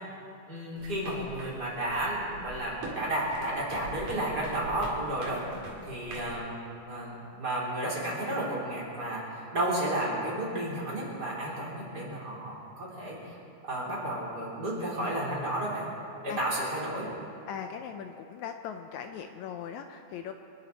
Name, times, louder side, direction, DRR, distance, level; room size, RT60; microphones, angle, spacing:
voice 1, 0.5-5.4 5.9-13.4 13.6-15.9 16.2-17.1, right 1 dB, 30° right, -6 dB, 4.0 m, -32 dB
sound 1, 0.8-6.3, right 2 dB, 65° right, 3.8 m, -44 dB
voice 2, 5.6-5.9 16.3-16.4 17.5-20.3, left 8 dB, 75° left, 7 dB, 1.9 m, -40 dB
27.5 x 11.0 x 4.1 m, 2.5 s
omnidirectional pair, 3.5 m